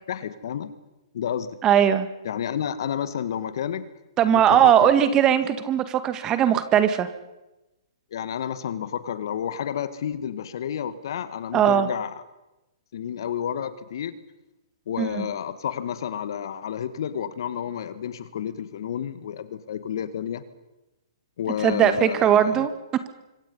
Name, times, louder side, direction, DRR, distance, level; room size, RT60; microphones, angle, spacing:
voice 1, 0.1-0.7 1.1-1.5 2.2-3.8 4.3-4.9 8.1-12.1 12.9-14.2 14.9-20.4 21.4-22.7, left 9 dB, 60° left, 13 dB, 1.8 m, -30 dB
voice 2, 1.6-2.1 4.2-7.1 11.5-11.9 15.0-15.3 21.6-22.7, right 9 dB, 25° right, 10 dB, 1.9 m, -19 dB
25.5 x 24.5 x 5.6 m, 1.0 s
hypercardioid pair, 125°, 3 cm